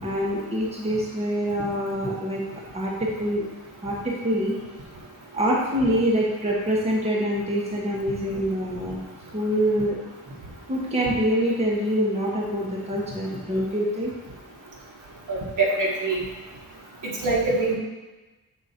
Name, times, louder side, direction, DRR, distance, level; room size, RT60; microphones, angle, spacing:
voice 1, 0.0-3.4 3.8-4.5 5.3-9.0 9.3-10.0 10.7-14.1, equal, 20° right, -4 dB, 1.1 m, -25 dB
voice 2, 15.3-16.2 17.0-17.8, right 3 dB, 60° right, -3 dB, 1.5 m, -24 dB
7.3 x 3.9 x 4.3 m, 1.2 s
wide cardioid pair, 165°, 34 cm